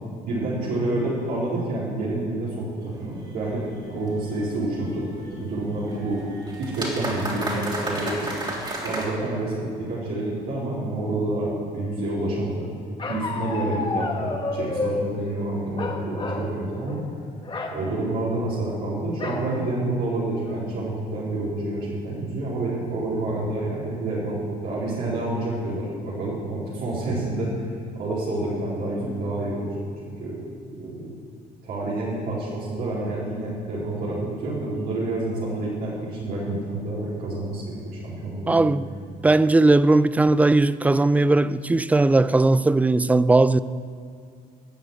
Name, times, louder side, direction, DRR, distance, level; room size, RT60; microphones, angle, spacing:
voice 1, 0.3-5.0 5.3-6.2 6.6-8.3 8.8-12.7 13.0-17.0 17.7-27.5 27.9-29.7 30.0-30.4 30.7-31.1 31.6-38.6, right 2 dB, 65° right, 4.1 m, -28 dB
sound 1, 2.8-9.1, right 1 dB, 25° right, 3.4 m, -34 dB
Bark, 13.0-15.1 15.8-16.5 16.8-17.1 17.4-17.8 19.2-19.5 20.0-20.1 20.4-20.9, left 3 dB, 30° left, 1.6 m, -30 dB
voice 2, 38.5-38.9 39.2-43.6, right 2 dB, 10° right, 0.3 m, -18 dB
13.0 x 6.5 x 9.1 m
cardioid pair, 110°, 17 cm